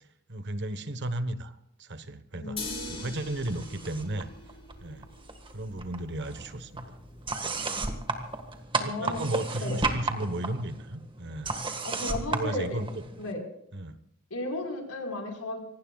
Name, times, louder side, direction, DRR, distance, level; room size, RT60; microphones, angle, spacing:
voice 1, 0.3-2.6 2.9-4.3 4.8-5.1 5.5-6.8 8.8-11.5 12.3-13.0 13.7-13.9, right 1 dB, 50° right, 11 dB, 1.2 m, -34 dB
voice 2, 2.3-3.1 8.7-9.2 9.6-9.8 11.8-12.8 13.2-13.5 14.3-15.6, left 2 dB, 80° left, 3 dB, 4.7 m, -34 dB
sound 1, 2.6-8.6, left 3 dB, 25° left, 3.9 m, -44 dB
sound 2, 3.4-4.2 4.5-5.5 5.8-13.3, right 3 dB, 25° right, 1.6 m, -34 dB
25.5 x 19.0 x 2.4 m, 0.75 s
head